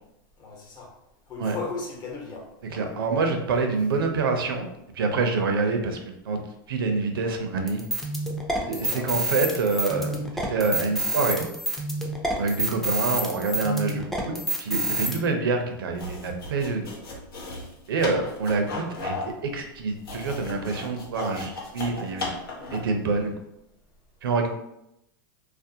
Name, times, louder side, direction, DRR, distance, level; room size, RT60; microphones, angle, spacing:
voice 1, 0.4-0.9 1.3-2.4 2.7-2.9 8.7-9.2 12.3-12.4 18.1-18.4, left 3 dB, 35° left, -2 dB, 0.9 m, -37 dB
voice 2, 2.7-4.7 5.0-6.4 6.7-7.8 8.7-11.5 12.4-16.9 17.9-22.3 22.7-23.3 24.2-24.5, right 4 dB, 85° right, 4 dB, 0.5 m, -26 dB
sound 1, 7.7-15.2, right 1 dB, ahead, 0.4 m, -28 dB
sound 2, 15.9-23.0, left 3 dB, 85° left, 0.7 m, -36 dB
2.4 x 2.1 x 2.6 m, 0.84 s
hypercardioid pair, 120°, 12 cm